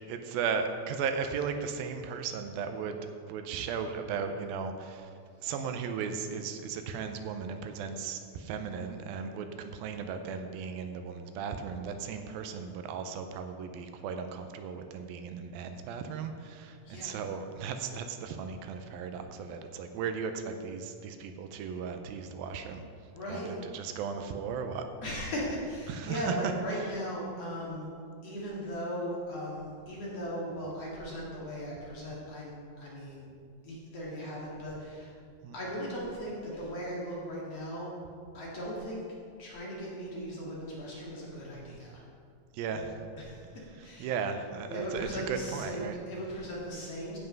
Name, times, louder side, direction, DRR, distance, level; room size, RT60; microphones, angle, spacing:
voice 1, 0.1-3.0 3.3-5.1 5.4-22.8 23.3-24.8 25.9-26.5 35.4-35.6 42.5-42.9 44.0-46.0, right 6 dB, 85° right, 7 dB, 2.5 m, -36 dB
voice 2, 16.8-17.2 23.1-23.5 25.0-27.9 28.2-33.3 33.6-35.1 35.5-37.9 38.3-39.0 39.4-41.9 42.7-42.8 43.2-43.4 43.8-44.1 44.7-47.2, equal, 45° left, -5 dB, 3.0 m, -38 dB
15.5 x 5.6 x 5.3 m, 2.3 s
omnidirectional pair, 4.2 m